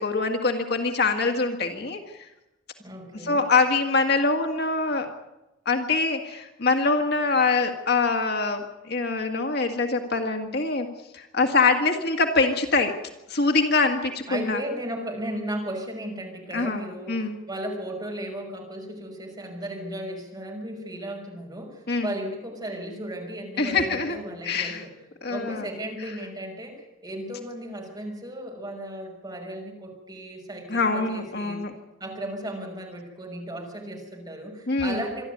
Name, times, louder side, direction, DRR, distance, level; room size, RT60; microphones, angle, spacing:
voice 1, 0.0-2.3 3.2-5.1 5.7-10.9 11.1-12.9 13.3-14.6 16.5-17.4 21.9-22.1 23.6-24.2 24.4-24.8 25.2-25.7 30.7-31.7 34.7-35.0, left 3 dB, 55° left, 4 dB, 2.0 m, -24 dB
voice 2, 2.8-3.4 14.3-24.9 25.3-31.6 32.0-35.2, right 1 dB, 20° right, 0 dB, 5.8 m, -35 dB
26.0 x 12.0 x 9.3 m, 0.97 s
head